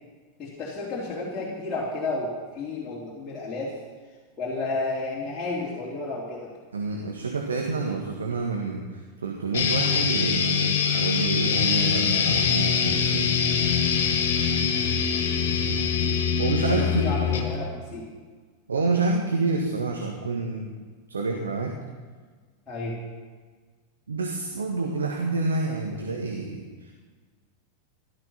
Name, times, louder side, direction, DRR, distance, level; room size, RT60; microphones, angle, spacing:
voice 1, 0.4-3.8 4.4-6.5 16.7-18.2 22.7-23.0, left 3 dB, 20° left, -7 dB, 3.6 m, -32 dB
voice 2, 6.7-13.3 16.4-17.1 18.7-20.7 21.1-21.8 24.1-26.9, right 3 dB, 70° right, 1 dB, 1.7 m, -28 dB
sound 1, 9.5-17.5, left 6 dB, 60° left, 2.2 m, -23 dB
16.5 x 12.5 x 5.8 m, 1.5 s
figure-of-eight pair, 90°, 0 cm